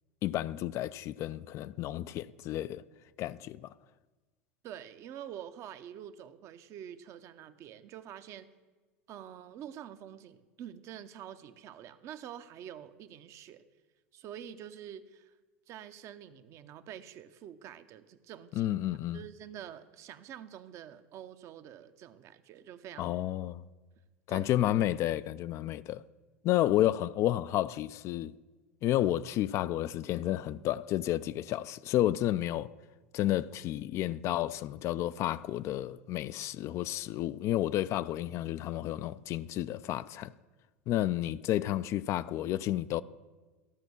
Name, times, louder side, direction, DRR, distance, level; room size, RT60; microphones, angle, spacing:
voice 1, 0.2-2.8 3.2-3.7 18.6-19.2 23.0-23.6 24.3-26.0 26.4-28.3 28.8-32.7 33.1-40.3 40.9-43.0, left 13 dB, 45° left, 0.4 m, -31 dB
voice 2, 4.6-8.5 9.1-13.6 14.1-15.3 15.7-18.7 19.1-23.1 24.3-24.5, right 10 dB, 45° right, 0.7 m, -47 dB
14.0 x 6.0 x 6.9 m
hypercardioid pair, 80°, 7 cm